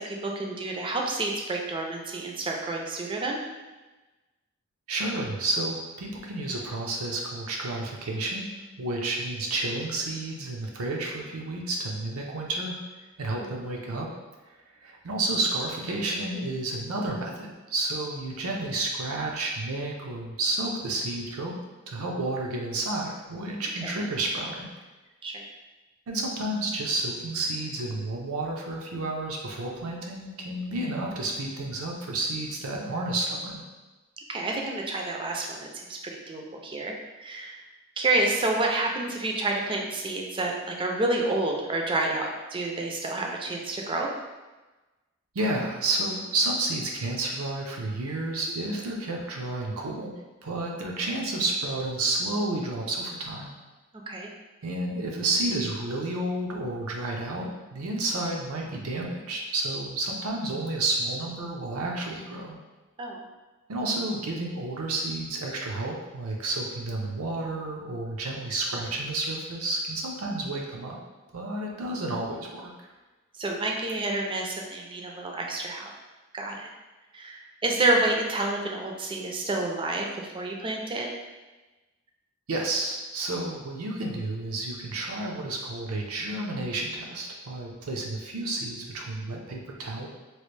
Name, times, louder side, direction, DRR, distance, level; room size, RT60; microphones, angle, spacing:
voice 1, 0.0-3.4 23.8-24.0 25.2-25.4 34.3-36.9 37.2-37.6 38.0-44.1 54.1-54.3 63.0-63.2 73.4-75.9 76.3-76.7 77.1-81.1, right 2 dB, 25° right, 0 dB, 0.4 m, -29 dB
voice 2, 4.9-8.5 8.8-12.7 13.2-14.1 14.8-21.5 21.9-24.7 26.1-33.6 45.3-50.1 50.4-53.5 54.6-62.6 63.7-71.0 71.3-72.9 82.5-90.1, right 2 dB, 90° right, -1 dB, 0.6 m, -31 dB
3.1 x 2.5 x 3.2 m, 1.2 s
head